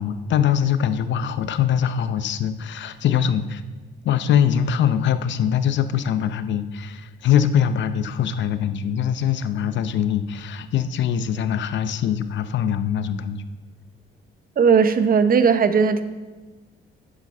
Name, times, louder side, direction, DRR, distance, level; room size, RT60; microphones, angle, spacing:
voice 1, 0.0-3.6 4.0-13.4, left 9 dB, 65° left, 11 dB, 0.7 m, -22 dB
voice 2, 14.6-16.0, right 6 dB, 45° right, 11 dB, 0.8 m, -17 dB
10.5 x 7.3 x 5.4 m, 1.3 s
cardioid pair, 90°, 20 cm